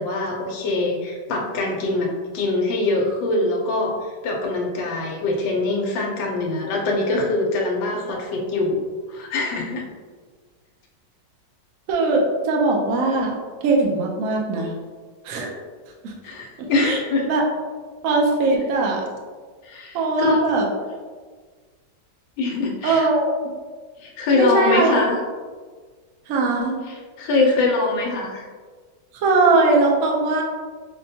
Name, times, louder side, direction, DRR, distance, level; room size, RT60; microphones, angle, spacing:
voice 1, 0.0-8.8 9.1-9.9 16.2-17.3 19.6-20.5 22.4-23.1 24.0-25.2 26.9-28.5, left 2 dB, 90° left, -1 dB, 1.3 m, -23 dB
voice 2, 11.9-13.3 13.6-14.7 15.2-15.5 16.0-16.1 16.8-17.0 17.3-17.5 18.0-19.0 19.9-20.7 22.8-23.5 24.3-25.0 26.3-26.8 29.1-30.4, right 3 dB, 65° right, 0 dB, 0.8 m, -20 dB
5.3 x 2.2 x 2.7 m, 1.5 s
omnidirectional pair, 2.0 m